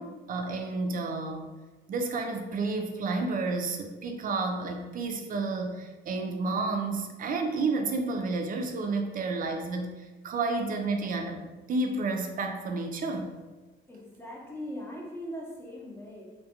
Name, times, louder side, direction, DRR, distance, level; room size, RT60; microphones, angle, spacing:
voice 1, 0.0-1.5 1.9-10.0 10.2-13.3, right 3 dB, 45° right, 4 dB, 0.4 m, -31 dB
voice 2, 13.9-16.3, equal, 10° left, -3 dB, 0.6 m, -40 dB
2.3 x 2.1 x 2.7 m, 1.2 s
cardioid pair, 90°, 20 cm